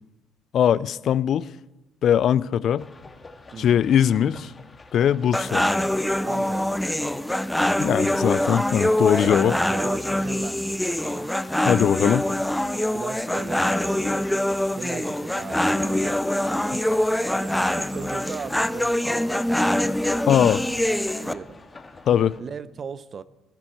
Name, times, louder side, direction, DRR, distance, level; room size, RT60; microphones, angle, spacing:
voice 1, 0.5-1.5 2.0-2.9 3.6-4.5 4.9-5.6 7.8-9.5 11.7-12.2 20.3-20.6 22.1-22.3, left 9 dB, 60° left, 0.4 m, -20 dB
sound 1, 2.8-22.4, left 3 dB, 25° left, 1.9 m, -47 dB
voice 2, 3.5-3.9 5.0-5.2 6.2-7.2 8.8-11.3 12.9-14.4 14.7-19.9 20.9-21.6 22.4-23.2, right 6 dB, 45° right, 0.7 m, -38 dB
sound 2, 5.3-21.3, left 1 dB, 5° left, 0.6 m, -24 dB
sound 3, 13.2-20.1, right 6 dB, 75° right, 3.1 m, -52 dB
21.0 x 9.9 x 4.5 m
cardioid pair, 90°, 0 cm